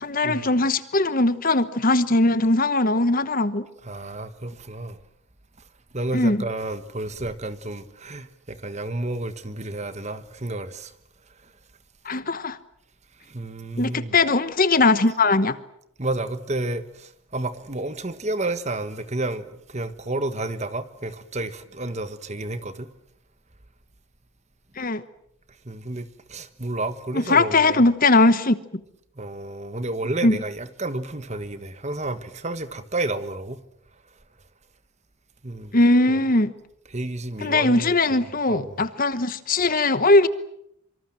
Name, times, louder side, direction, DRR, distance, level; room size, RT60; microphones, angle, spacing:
voice 1, 0.0-3.7 6.1-6.4 12.0-12.6 13.8-15.6 24.8-25.0 27.3-28.6 30.2-30.4 35.7-36.5 37.4-40.3, left 2 dB, 40° left, 1.1 m, -20 dB
voice 2, 3.8-5.0 5.9-10.9 13.3-14.1 16.0-22.9 25.6-27.8 29.2-33.6 35.4-35.7 36.1-36.2 36.9-37.9 38.5-38.8, right 2 dB, 30° right, 1.4 m, -31 dB
25.5 x 25.0 x 7.6 m
head